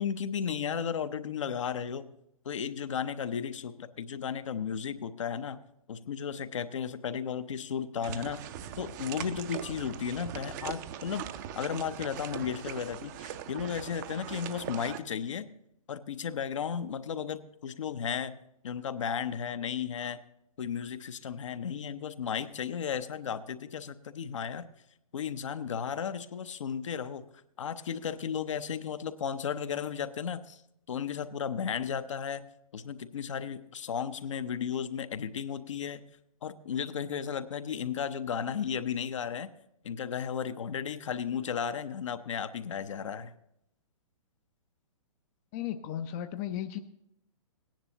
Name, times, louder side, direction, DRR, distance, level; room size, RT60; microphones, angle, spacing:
voice 1, 0.0-2.1 2.4-5.6 5.9-8.4 8.8-11.3 11.6-15.5 15.9-18.4 18.6-20.2 20.6-24.7 25.1-27.2 27.6-30.6 30.9-32.4 32.7-36.0 36.4-39.5 39.8-43.3, left 7 dB, 60° left, 11 dB, 0.7 m, -34 dB
sound 1, 8.0-15.0, right 10 dB, 35° right, 0.6 m, -41 dB
voice 2, 45.5-46.8, left 11 dB, 25° left, 9 dB, 0.5 m, -35 dB
17.5 x 10.0 x 2.9 m, 0.80 s
figure-of-eight pair, 120°, 18 cm